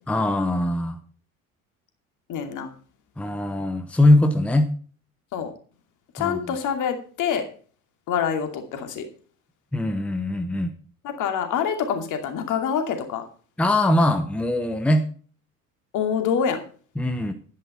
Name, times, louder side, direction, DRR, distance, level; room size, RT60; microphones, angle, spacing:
voice 1, 0.1-1.0 3.2-4.7 6.2-6.5 9.7-10.7 13.6-15.0 17.0-17.3, left 1 dB, 5° left, 8 dB, 1.0 m, -21 dB
voice 2, 2.3-2.7 5.3-5.5 6.1-7.5 8.1-9.0 11.0-13.2 15.9-16.6, left 7 dB, 45° left, 6 dB, 2.6 m, -26 dB
11.5 x 10.5 x 4.4 m, 0.42 s
figure-of-eight pair, 60°, 42 cm